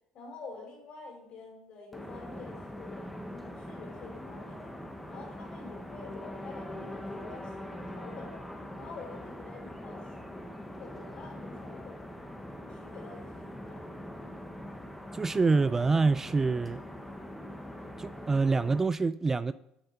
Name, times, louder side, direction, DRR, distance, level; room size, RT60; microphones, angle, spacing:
voice 1, 0.1-4.7 5.1-8.4 8.8-10.3 10.7-12.0 12.7-13.9, left 3 dB, 55° left, 4.1 m, -48 dB
sound 1, 1.9-18.8, left 1 dB, 5° left, 1.2 m, -43 dB
voice 2, 15.1-16.8 18.0-19.5, right 4 dB, 20° right, 0.3 m, -26 dB
10.0 x 7.9 x 4.0 m
cardioid pair, 110°, 2 cm